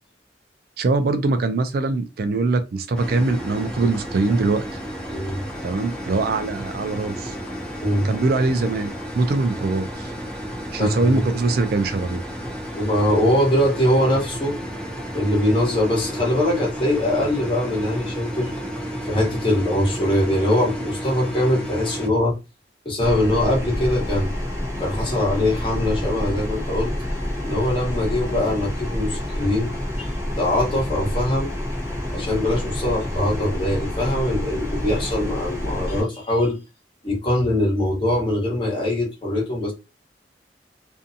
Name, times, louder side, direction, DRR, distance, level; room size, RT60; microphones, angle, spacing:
voice 1, 0.8-4.6 5.6-7.4 8.0-10.1 10.7-12.2, right 3 dB, 55° right, 0.4 m, -22 dB
sound 1, 2.9-22.1, equal, 5° left, 0.5 m, -32 dB
voice 2, 5.1-5.4 7.8-8.1 10.8-11.2 12.7-14.5 15.1-18.5 19.1-22.4 22.8-24.3 24.8-26.9 27.4-30.1 30.4-31.5 32.1-36.6 37.0-39.7, left 1 dB, 30° left, 1.1 m, -22 dB
sound 2, 23.0-36.0, left 1 dB, 15° right, 0.8 m, -28 dB
2.6 x 2.2 x 2.6 m
head